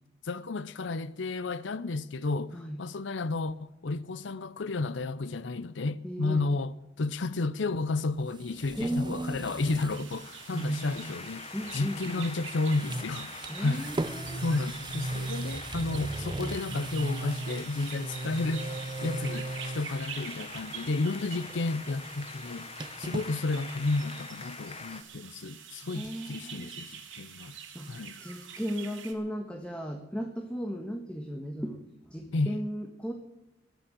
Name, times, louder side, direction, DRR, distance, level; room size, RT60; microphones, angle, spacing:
voice 1, 0.2-11.5 11.7-13.8 14.4-18.7 19.0-22.7 23.0-27.6 27.9-28.2 32.3-32.6, left 3 dB, 70° left, 0.6 m, -32 dB
voice 2, 6.0-6.4 8.8-9.4 10.5-11.1 11.5-12.3 13.5-14.4 25.9-26.7 27.7-27.9 28.2-31.8 32.1-33.1, equal, 5° left, 1.5 m, -35 dB
sound 1, 8.1-10.1 10.4-10.5 12.2-12.4 12.7-20.1 20.5-20.9 21.2-23.3, right 2 dB, 25° right, 0.6 m, -37 dB
sound 2, 9.8-25.0, left 5 dB, 30° left, 1.1 m, -45 dB
sound 3, 9.9-29.1, right 8 dB, 80° right, 2.8 m, -46 dB
21.0 x 7.1 x 8.9 m
head